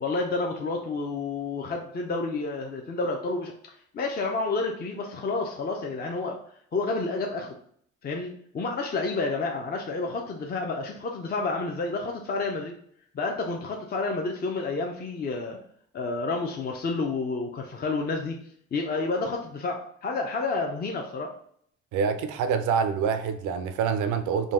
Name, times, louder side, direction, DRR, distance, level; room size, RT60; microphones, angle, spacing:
voice 1, 0.0-3.5 3.9-6.4 6.7-7.6 8.0-12.8 13.1-15.6 15.9-18.4 18.7-21.3, left 3 dB, 30° left, 1 dB, 0.5 m, -30 dB
voice 2, 21.9-24.5, right 6 dB, 85° right, 9 dB, 0.5 m, -26 dB
3.9 x 2.1 x 3.6 m, 0.64 s
cardioid pair, 90°, 30 cm